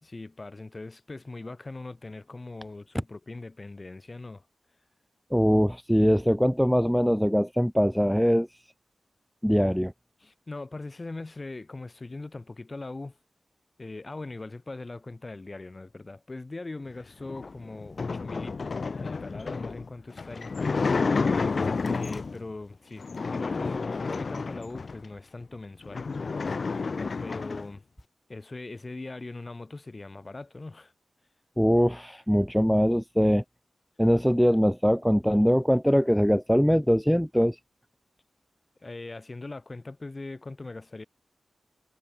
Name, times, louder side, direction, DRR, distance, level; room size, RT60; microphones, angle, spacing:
voice 1, 0.0-4.5 10.2-13.2 13.8-20.9 21.3-26.1 27.2-27.8 28.3-30.9 38.8-41.0, left 2 dB, 25° left, 1.7 m, -40 dB
voice 2, 5.3-8.5 9.4-9.9 31.6-33.4 34.0-37.6, equal, ahead, 0.3 m, -22 dB
sound 1, 17.3-22.4 23.0-25.1 25.5-25.6 25.8-27.7, left 4 dB, 45° left, 1.8 m, -30 dB
wide cardioid pair, 140°, 0 cm